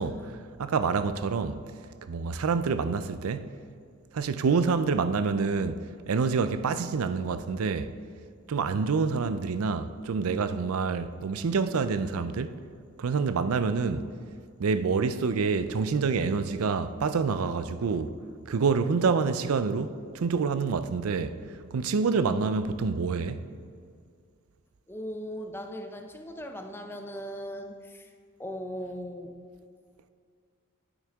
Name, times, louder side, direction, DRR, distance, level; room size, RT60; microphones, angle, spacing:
voice 1, 0.0-1.6 2.1-3.5 4.1-7.9 8.5-12.6 13.0-14.1 14.6-18.2 18.5-23.5, right 5 dB, 85° right, 0.5 m, -27 dB
voice 2, 24.9-28.1 28.4-29.4, equal, 10° left, 0.6 m, -39 dB
9.4 x 9.0 x 3.5 m
head